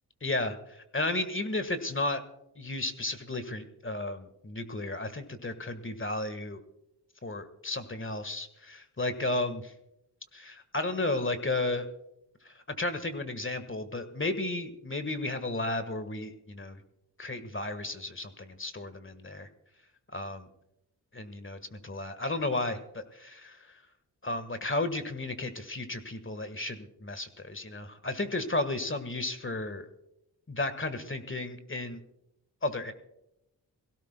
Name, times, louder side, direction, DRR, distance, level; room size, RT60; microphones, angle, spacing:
voice 1, 0.2-2.2 2.6-6.6 7.2-9.7 10.3-11.9 12.4-16.8 17.2-19.5 20.1-20.5 21.1-23.6 24.2-29.9 30.5-32.0 32.6-32.9, left 2 dB, 25° left, 10 dB, 1.5 m, -33 dB
22.0 x 16.5 x 2.2 m, 0.85 s
supercardioid pair, 40°, 44 cm